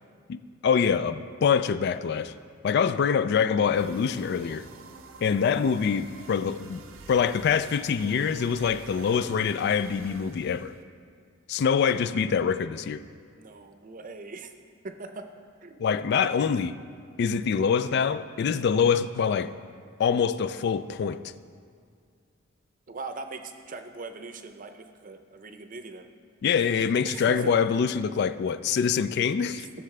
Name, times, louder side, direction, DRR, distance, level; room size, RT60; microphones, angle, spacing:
voice 1, 0.3-2.3 2.6-4.7 5.2-6.8 7.1-10.7 11.5-13.0 15.8-16.8 17.2-19.5 20.0-21.2 26.4-29.7, left 6 dB, 55° left, 12 dB, 0.3 m, -25 dB
sound 1, 3.7-10.8, right 4 dB, 85° right, 0.7 m, -48 dB
voice 2, 13.4-14.5 14.8-15.3 15.6-15.9 22.9-26.1 27.0-27.7, right 3 dB, 40° right, 7 dB, 0.6 m, -40 dB
16.5 x 6.7 x 3.3 m, 2.1 s
head